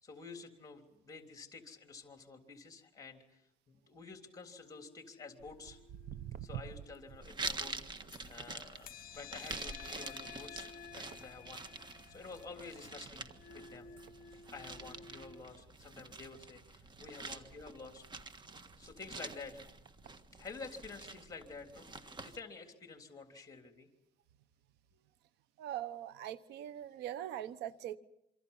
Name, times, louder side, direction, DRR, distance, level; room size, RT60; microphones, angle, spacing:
voice 1, 0.0-5.8 6.4-11.7 12.1-13.9 14.5-18.3 18.8-19.7 20.3-23.9, left 4 dB, 20° left, 4 dB, 3.4 m, -50 dB
sound 1, 4.3-8.3 8.8-15.4, left 7 dB, 55° left, 0.9 m, -55 dB
Walk footsteps, 5.4-12.1 12.4-12.7 13.3-13.4 14.1-14.2 14.6-14.7 14.8-14.9 15.5-15.7 16.3-17.9 18.5-18.6 19.3-19.4 19.8-20.1 20.8-20.9, right 11 dB, 60° right, 0.8 m, -50 dB
sound 2, 7.2-22.4, right 3 dB, 25° right, 1.5 m, -47 dB
voice 2, 25.6-28.0, right 11 dB, 85° right, 15 dB, 1.1 m, -41 dB
27.0 x 25.0 x 5.7 m, 0.82 s
cardioid pair, 110°, 17 cm